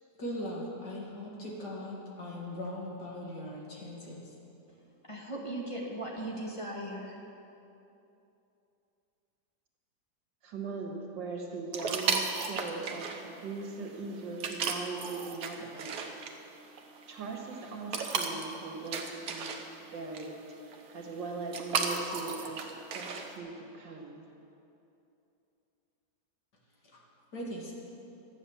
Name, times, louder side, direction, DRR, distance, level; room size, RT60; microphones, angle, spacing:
voice 1, 0.2-4.3 26.8-27.0 27.3-27.7, left 1 dB, 60° left, -3 dB, 2.6 m, -39 dB
voice 2, 5.1-7.2, right 1 dB, 20° left, -3 dB, 1.5 m, -38 dB
voice 3, 10.4-16.0 17.1-19.6 19.9-24.2, right 3 dB, 75° right, 0 dB, 2.3 m, -40 dB
sound 1, 11.7-23.4, right 5 dB, 55° right, 1.3 m, -36 dB
13.0 x 8.7 x 7.0 m, 2.8 s
omnidirectional pair, 2.0 m